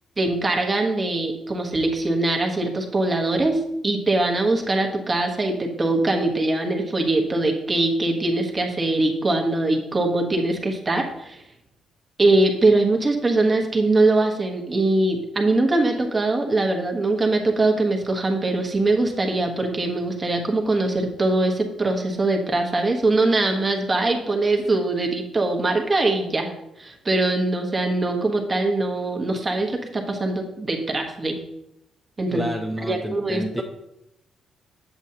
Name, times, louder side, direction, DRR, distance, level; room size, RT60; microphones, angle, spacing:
voice 1, 0.2-11.4 12.2-26.5 26.8-31.4 32.2-32.4 32.8-33.6, right 2 dB, 25° right, 2 dB, 1.3 m, -22 dB
voice 2, 32.3-33.6, equal, ahead, 0 dB, 0.7 m, -29 dB
8.0 x 7.2 x 2.9 m, 0.84 s
cardioid pair, 90°, 0 cm